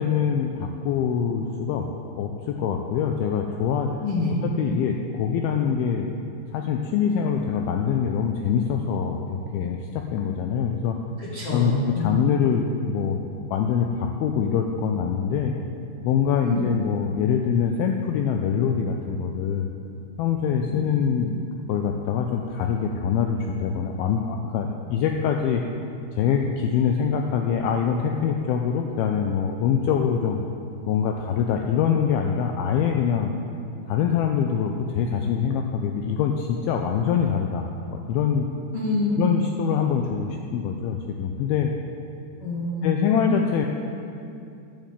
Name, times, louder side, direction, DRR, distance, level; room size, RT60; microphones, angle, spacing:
voice 1, 0.0-1.9 2.2-3.9 4.4-6.1 6.5-11.0 11.5-13.2 13.5-15.5 16.0-19.7 20.2-21.4 21.7-25.6 26.2-30.4 30.9-33.3 33.9-38.5 39.2-41.7 42.8-43.7, left 7 dB, 85° left, 3 dB, 2.2 m, -24 dB
voice 2, 4.0-4.4 11.2-12.2 16.4-16.7 20.6-20.9 38.7-39.2 42.4-43.0, left 2 dB, 50° left, -8 dB, 1.8 m, -26 dB
10.5 x 7.4 x 7.4 m, 2.5 s
omnidirectional pair, 4.9 m